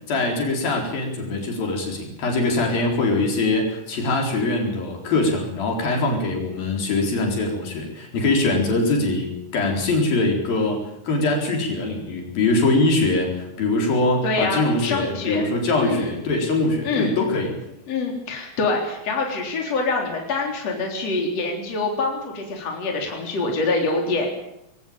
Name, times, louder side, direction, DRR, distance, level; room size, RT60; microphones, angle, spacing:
voice 1, 0.1-17.5, left 2 dB, 75° left, 1 dB, 6.0 m, -22 dB
voice 2, 14.2-15.4 15.8-16.2 16.8-17.2 17.9-24.3, left 3 dB, 45° left, 1 dB, 4.8 m, -25 dB
22.0 x 17.5 x 8.9 m, 0.82 s
omnidirectional pair, 4.2 m